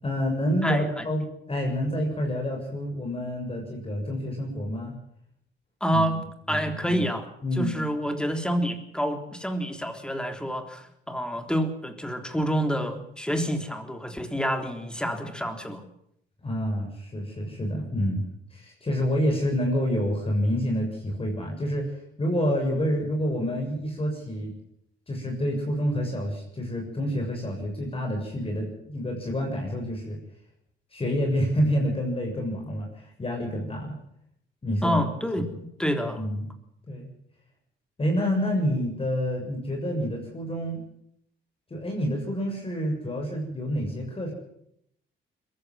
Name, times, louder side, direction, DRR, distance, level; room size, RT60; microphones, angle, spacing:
voice 1, 0.0-4.9 5.9-6.0 6.5-7.1 7.4-7.8 16.4-18.3 18.5-21.9 22.2-24.5 25.1-30.2 30.9-34.0 34.6-35.0 36.2-36.5 36.9-37.1 38.0-40.8 41.7-44.3, equal, 30° left, 1 dB, 7.0 m, -28 dB
voice 2, 0.6-1.1 5.8-6.2 6.5-7.3 7.6-15.8 34.8-35.5 35.8-36.2, equal, 5° left, 6 dB, 3.6 m, -28 dB
22.0 x 15.0 x 9.5 m, 0.74 s
cardioid pair, 90°, 20 cm